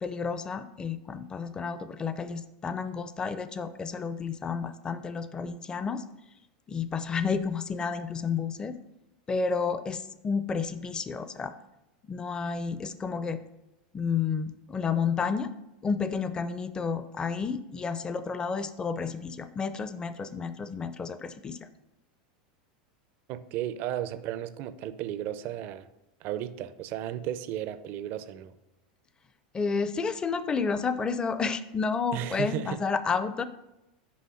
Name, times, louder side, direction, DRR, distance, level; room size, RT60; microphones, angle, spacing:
voice 1, 0.0-6.0 6.7-8.8 9.3-11.5 12.1-13.4 13.9-15.5 15.8-21.7 29.5-33.4, left 5 dB, 20° left, 0.5 m, -31 dB
voice 2, 23.3-25.9 26.2-28.5 32.1-32.8, right 11 dB, 45° right, 0.5 m, -34 dB
6.2 x 5.2 x 5.6 m
supercardioid pair, 135°, 5 cm